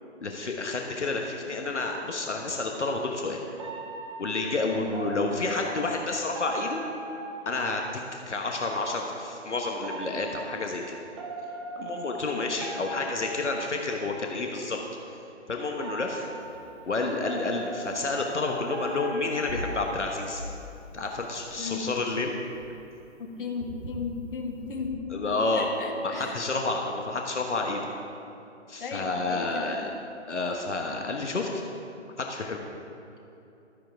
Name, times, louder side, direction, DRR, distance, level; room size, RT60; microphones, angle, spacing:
voice 1, 0.2-3.4 4.2-6.8 7.4-7.8 8.1-11.0 11.8-14.8 15.5-16.2 16.9-20.4 20.9-22.3 25.1-25.8 26.0-27.8 28.7-29.9 30.3-31.6 32.2-32.6, left 3 dB, 70° left, 2 dB, 1.2 m, -30 dB
sound 1, 3.6-8.2 9.8-14.4 15.7-20.4, right 2 dB, 25° right, 0.8 m, -40 dB
sound 2, 16.4-16.9 17.2-17.3 18.5-22.0 22.5-24.9, left 1 dB, 45° right, 2.5 m, -42 dB
voice 2, 23.2-25.2 25.5-26.4 28.8-29.8, left 5 dB, 45° left, 3 dB, 1.6 m, -35 dB
12.5 x 8.8 x 4.6 m, 2.9 s
figure-of-eight pair, 140°, 36 cm